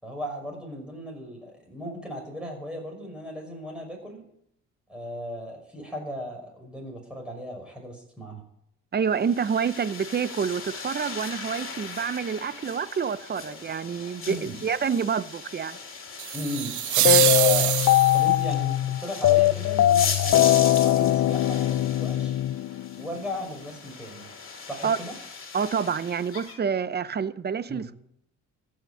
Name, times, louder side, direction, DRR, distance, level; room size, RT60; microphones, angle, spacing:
voice 1, 0.0-4.2 4.9-8.4 14.2-14.6 16.3-17.8 18.1-22.4 23.0-24.3 24.6-25.2 27.7-27.8, left 1 dB, 5° right, 5.9 m, -36 dB
voice 2, 8.9-15.8 17.0-17.2 24.8-25.0 25.5-27.9, right 6 dB, 35° right, 0.7 m, -28 dB
sound 1, 9.1-26.5, left 5 dB, 45° left, 3.1 m, -38 dB
sound 2, 16.2-18.4, right 15 dB, 75° right, 0.5 m, -24 dB
sound 3, 17.0-23.2, left 13 dB, 60° left, 0.5 m, -21 dB
14.5 x 6.6 x 9.8 m
cardioid pair, 90°, 30 cm